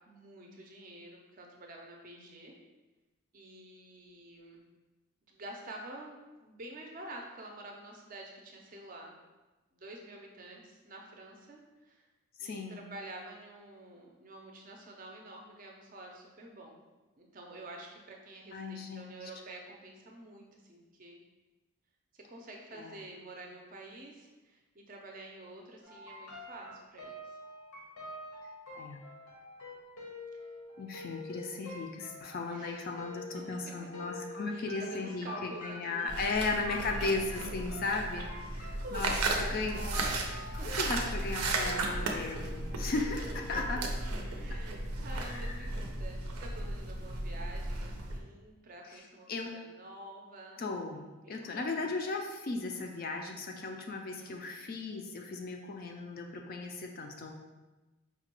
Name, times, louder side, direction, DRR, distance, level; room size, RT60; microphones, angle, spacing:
voice 1, 0.1-2.5 3.3-4.6 5.3-9.2 9.7-12.1 12.4-16.7 17.2-21.2 22.3-27.1 30.3-30.4 32.5-32.8 34.5-36.1 38.5-40.3 40.6-40.7 42.9-43.0 43.6-43.7 44.4-50.6 51.2-52.0 54.0-54.4, right 1 dB, 40° right, 1 dB, 0.4 m, -48 dB
voice 2, 12.4-12.8 18.5-19.3 22.7-23.0 28.7-29.0 30.8-38.3 38.6-39.8 40.6-43.8 44.5-44.6 45.2-45.7 48.9-49.0 49.3-49.5 50.6-57.3, left 3 dB, 40° left, 3 dB, 0.3 m, -36 dB
sound 1, 25.8-44.1, left 2 dB, 80° left, 0.9 m, -47 dB
sound 2, 36.1-48.2, right 2 dB, 90° right, 0.5 m, -35 dB
4.8 x 2.2 x 2.9 m, 1.2 s
head